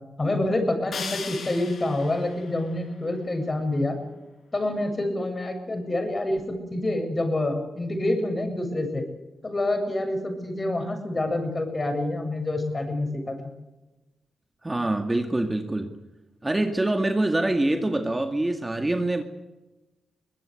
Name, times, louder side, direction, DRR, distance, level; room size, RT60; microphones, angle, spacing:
voice 1, 0.2-4.0 4.5-9.0 9.4-13.4, left 1 dB, 30° left, 6 dB, 7.6 m, -27 dB
sound 1, 0.9-3.9, left 5 dB, 60° left, 7.1 m, -39 dB
voice 2, 14.6-16.0 16.4-19.2, right 1 dB, 15° right, 6 dB, 2.1 m, -25 dB
23.5 x 20.0 x 8.2 m, 1.1 s
cardioid pair, 80°, 0 cm